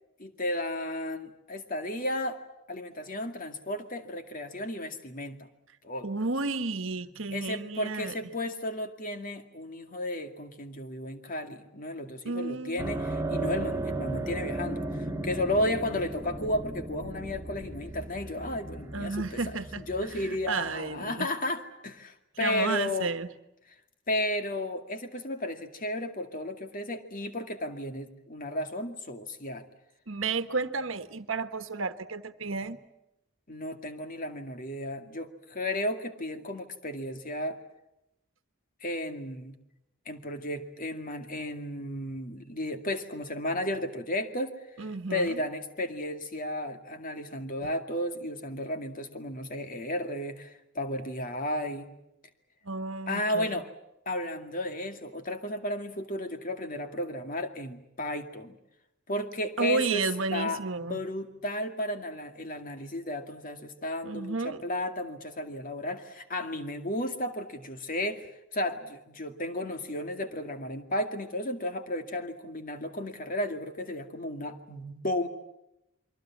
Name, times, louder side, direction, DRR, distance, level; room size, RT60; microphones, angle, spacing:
voice 1, 0.2-2.4 2.7-5.4 5.8-6.1 7.3-19.4 19.8-23.1 24.1-29.6 33.5-37.6 38.8-39.5 40.1-44.6 45.1-51.9 53.1-53.7 54.1-58.6 59.1-60.1 60.3-75.3, left 1 dB, 40° left, 7 dB, 2.2 m, -33 dB
voice 2, 6.0-8.2 12.2-12.8 18.9-21.3 22.4-23.3 30.1-32.8 44.8-45.4 47.6-47.7 52.6-53.6 59.6-61.0 64.0-64.6, right 3 dB, 65° right, 11 dB, 1.4 m, -32 dB
sound 1, 12.8-21.1, right 2 dB, 15° right, 1.4 m, -36 dB
28.5 x 23.5 x 7.3 m, 0.87 s
head